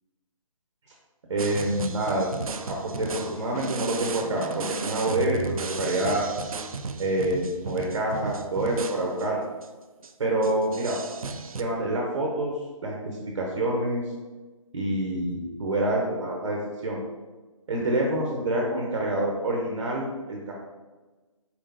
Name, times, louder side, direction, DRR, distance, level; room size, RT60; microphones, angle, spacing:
voice 1, 1.3-2.3 2.7-6.3 7.0-9.4 10.2-11.0 11.6-12.5 12.8-14.0 14.7-17.0 17.7-20.5, right 1 dB, 50° right, -1 dB, 0.8 m, -27 dB
sound 1, 1.4-9.3 9.6-9.7 10.0-10.1 10.4-11.6, right 4 dB, 80° right, 0.4 m, -35 dB
4.4 x 3.7 x 2.7 m, 1.2 s
figure-of-eight pair, 150°, 18 cm